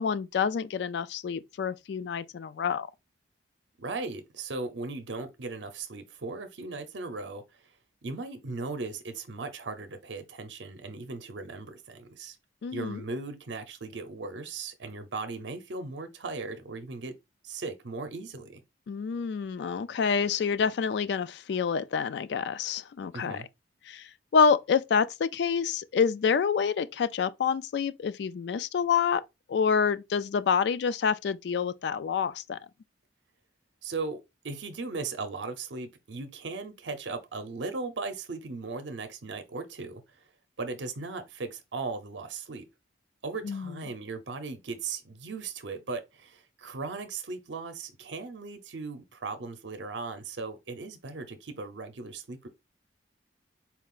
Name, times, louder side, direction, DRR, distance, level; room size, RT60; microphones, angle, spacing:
voice 1, 0.0-2.9 12.6-13.0 18.9-23.4 23.9-24.0 24.3-29.2 29.5-32.6 43.4-43.7, left 6 dB, 65° left, 0.3 m, -27 dB
voice 2, 3.8-7.4 8.0-12.4 12.7-17.1 17.4-18.6 23.1-23.5 33.8-40.2 40.6-42.7 43.2-52.5, right 3 dB, 70° right, 0.6 m, -37 dB
4.4 x 2.4 x 3.6 m
head